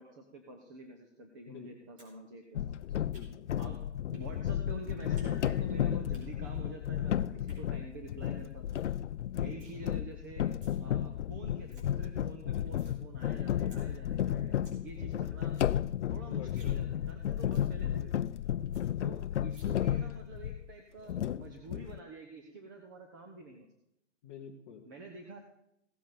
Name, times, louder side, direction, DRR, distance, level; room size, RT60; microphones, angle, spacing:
voice 1, 0.0-3.1 3.6-3.8 4.1-8.8 9.3-10.5 10.8-15.6 16.1-18.1 19.0-23.7 24.8-25.4, right 3 dB, 15° right, 4 dB, 0.7 m, -48 dB
sound 1, 2.0-2.1 2.4-3.5 4.1-4.3 4.6-5.3 5.6-6.2 7.2-7.6 8.1-8.2 8.4-8.5 8.7-9.0 9.2-9.7 10.4-10.8 11.2-11.3 11.5-11.8 12.2-13.0 13.3-13.4 13.7-13.8 14.2-14.3 14.5-14.8 15.1-15.2 15.4-15.7 16.1-16.2 16.5-16.8 17.1-17.2 17.5-17.7 18.1-18.2 18.4-18.5 18.7-18.8 19.5-19.6, right 1 dB, 45° right, 4.9 m, -60 dB
sound 2, 2.6-20.7 21.1-22.0, left 10 dB, 75° left, 0.5 m, -33 dB
voice 2, 3.1-3.6 9.4-9.7 16.4-16.7 17.4-17.8 24.2-24.9, left 7 dB, 15° left, -2 dB, 0.8 m, -49 dB
16.5 x 7.3 x 5.8 m, 0.77 s
hypercardioid pair, 165°, 36 cm